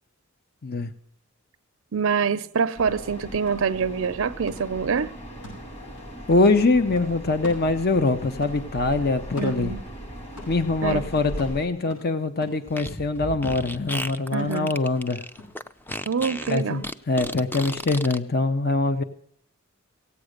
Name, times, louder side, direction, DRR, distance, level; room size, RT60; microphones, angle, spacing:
voice 1, 1.9-5.1 9.4-9.8 10.8-11.1 14.3-14.7 16.1-16.9, right 6 dB, 70° right, 0.5 m, -25 dB
sound 1, 2.5-2.6 3.0-6.1 6.4-8.2 8.4-10.0 10.4-16.0 16.4-16.5, left 2 dB, 75° left, 7.8 m, -45 dB
sound 2, 2.8-11.7, right 1 dB, 30° left, 2.5 m, -39 dB
voice 2, 6.3-9.7 10.5-15.2 16.5-19.0, left 3 dB, 50° left, 0.8 m, -23 dB
Fart, 12.7-18.2, left 1 dB, 10° left, 0.5 m, -34 dB
17.0 x 8.6 x 6.5 m
head